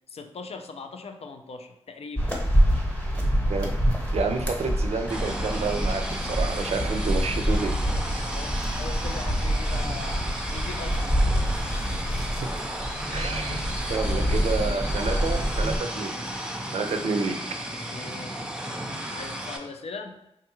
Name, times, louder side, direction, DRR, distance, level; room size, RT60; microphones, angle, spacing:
voice 1, 0.1-2.4 8.2-11.3 12.4-12.7 17.9-18.4 19.1-20.2, left 4 dB, 65° left, 5 dB, 0.4 m, -40 dB
sound 1, 2.2-15.8, equal, 10° left, 0.9 m, -26 dB
voice 2, 4.1-7.7 12.6-12.7 13.1-13.6 13.9-16.1 16.7-17.4, right 4 dB, 70° right, 5 dB, 0.4 m, -29 dB
sound 2, 5.1-17.0, left 2 dB, 85° left, 1.1 m, -47 dB
sound 3, 5.1-19.6, right 1 dB, 10° right, 0.5 m, -34 dB
3.4 x 2.3 x 3.0 m, 0.84 s
cardioid pair, 65°, 11 cm